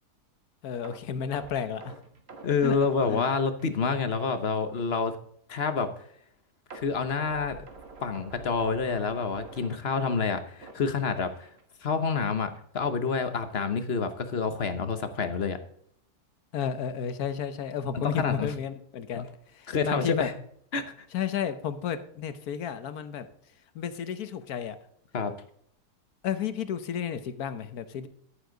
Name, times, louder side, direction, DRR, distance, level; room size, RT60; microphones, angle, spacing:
voice 1, 0.6-2.0 2.6-2.8 3.1-3.3 16.5-19.3 19.5-20.3 21.1-23.3 23.7-24.8 26.2-28.1, left 8 dB, 65° left, 11 dB, 1.4 m, -32 dB
sound 1, 0.8-3.9 4.2-4.4 4.8-4.9 6.7-11.6 11.9-12.1 12.5-12.6, right 3 dB, 40° right, 1.6 m, -48 dB
voice 2, 2.4-5.1 5.5-5.9 6.8-7.6 8.0-11.5 11.8-15.6 18.0-18.5 19.1-19.2 19.7-20.3 20.7-20.9 25.1-25.3, left 5 dB, 45° left, 10 dB, 1.1 m, -28 dB
10.5 x 9.5 x 3.9 m, 0.65 s
omnidirectional pair, 1.7 m